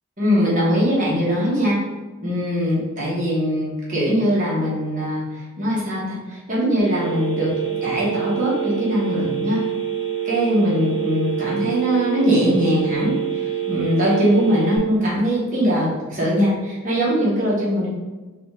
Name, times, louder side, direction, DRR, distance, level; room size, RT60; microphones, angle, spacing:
voice 1, 0.2-1.8 2.2-9.6 10.2-17.9, equal, 35° right, -7 dB, 1.4 m, -21 dB
Telephone, 6.8-14.8, right 10 dB, 70° left, 1.0 m, -26 dB
5.0 x 2.5 x 3.4 m, 1.2 s
head